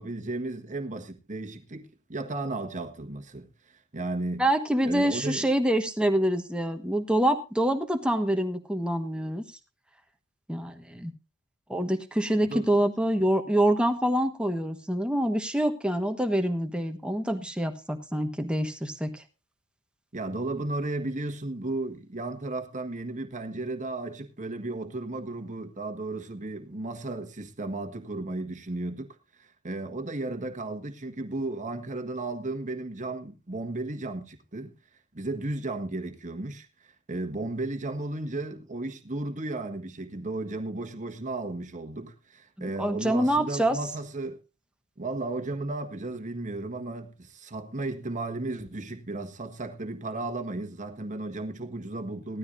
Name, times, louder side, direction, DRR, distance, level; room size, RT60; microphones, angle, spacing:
voice 1, 0.0-4.5 4.8-5.5 12.4-12.7 20.1-34.8 35.1-44.4 45.0-52.4, right 2 dB, 35° right, 1.5 m, -34 dB
voice 2, 4.4-9.4 10.5-11.1 11.7-19.2 42.6-43.8, right 1 dB, 5° right, 1.3 m, -26 dB
18.0 x 13.0 x 2.6 m
head